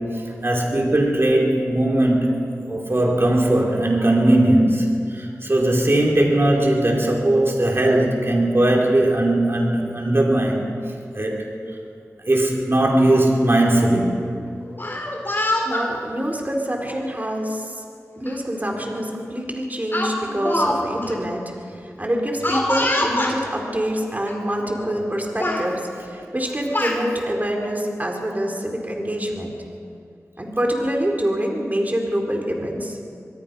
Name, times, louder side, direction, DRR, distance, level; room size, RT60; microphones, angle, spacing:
voice 1, 0.0-10.7 11.1-11.5 12.2-14.2, right 1 dB, 45° right, -1 dB, 5.1 m, -19 dB
Speech, 14.7-15.9 16.8-17.0 18.3-18.4 18.7-19.0 19.9-20.8 21.0-21.1 22.4-23.4 24.3-24.4 24.7-25.1 25.4-25.6 26.4-27.0, left 1 dB, 40° left, 4.7 m, -24 dB
voice 2, 15.6-17.8 18.2-29.5 30.4-33.0, equal, 30° right, 1 dB, 4.0 m, -26 dB
25.5 x 21.0 x 5.5 m, 2.4 s
cardioid pair, 45°, 6 cm